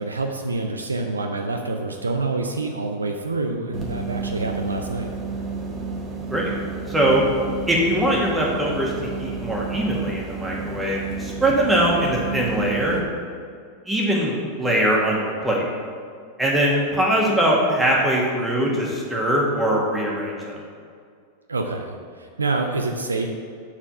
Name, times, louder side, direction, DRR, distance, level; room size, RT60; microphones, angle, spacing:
voice 1, 0.0-5.1 21.5-23.3, right 3 dB, 75° right, 4 dB, 0.5 m, -27 dB
sound 1, 3.7-13.0, right 4 dB, 25° right, 1.2 m, -31 dB
voice 2, 6.9-7.2 7.7-8.9 9.2-13.0 13.9-14.3 14.6-15.6 16.4-20.6, right 1 dB, 10° right, -3 dB, 1.5 m, -21 dB
7.1 x 4.3 x 5.4 m, 2.1 s
figure-of-eight pair, 90°, 0 cm